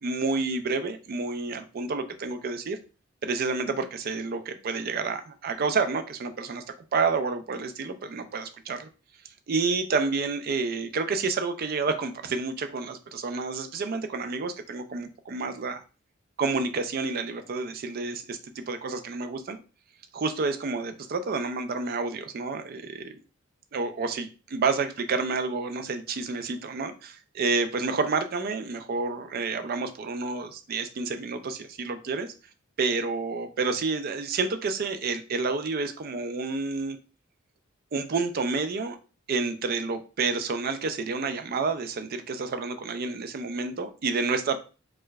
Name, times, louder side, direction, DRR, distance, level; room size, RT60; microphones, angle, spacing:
voice 1, 0.0-2.8 3.2-6.6 6.9-8.9 9.5-15.8 16.4-19.6 20.1-23.2 23.7-32.3 32.8-37.0 37.9-39.0 39.3-44.6, right 4 dB, 50° right, 8 dB, 0.4 m, -29 dB
4.5 x 2.2 x 2.3 m, 0.33 s
head